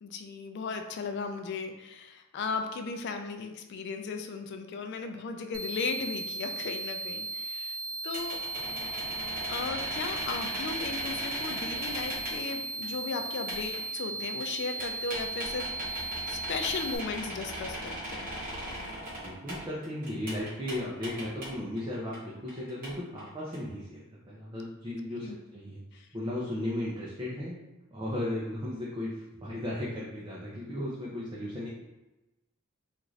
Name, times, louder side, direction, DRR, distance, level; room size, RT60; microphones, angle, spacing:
voice 1, 0.0-7.8 8.0-8.4 9.5-18.3 25.1-25.4 25.9-26.1, left 4 dB, 55° left, 6 dB, 0.3 m, -36 dB
sound 1, 5.5-17.0, right 3 dB, 80° right, 0.5 m, -36 dB
sound 2, 8.1-12.6 12.8-20.8 21.0-22.2 22.5-22.9 23.2-23.6, equal, 40° right, 0.9 m, -38 dB
voice 2, 19.2-25.8 26.1-27.6 27.9-29.1 29.4-31.7, left 1 dB, 20° right, -7 dB, 0.5 m, -35 dB
2.5 x 2.5 x 3.1 m, 1.0 s
head